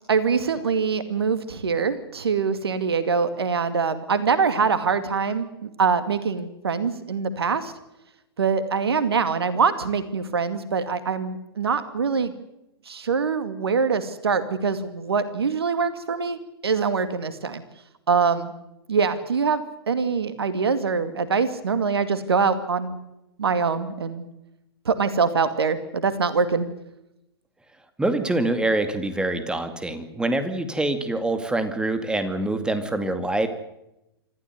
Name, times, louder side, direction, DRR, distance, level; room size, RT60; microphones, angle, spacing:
voice 1, 0.1-7.7 8.4-12.3 12.9-17.6 18.1-18.5 18.9-23.0 23.4-24.2 24.9-26.7, right 5 dB, 75° right, 12 dB, 2.3 m, -24 dB
voice 2, 28.0-33.5, right 2 dB, 5° right, 9 dB, 2.4 m, -25 dB
26.5 x 15.0 x 9.4 m, 0.88 s
figure-of-eight pair, 110°, 13 cm